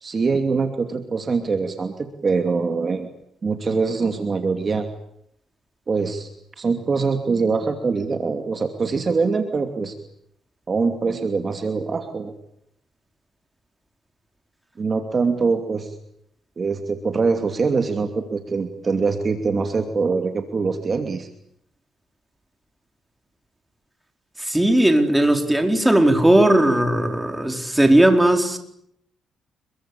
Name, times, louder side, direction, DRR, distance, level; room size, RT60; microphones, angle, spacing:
voice 1, 0.0-3.1 3.4-4.9 5.9-6.3 6.6-9.9 10.7-12.3 14.8-15.9 16.6-21.3, right 4 dB, 35° right, 2.8 m, -23 dB
voice 2, 24.4-28.6, right 1 dB, 5° right, 4.6 m, -17 dB
27.5 x 23.0 x 8.7 m
cardioid pair, 100°, 0 cm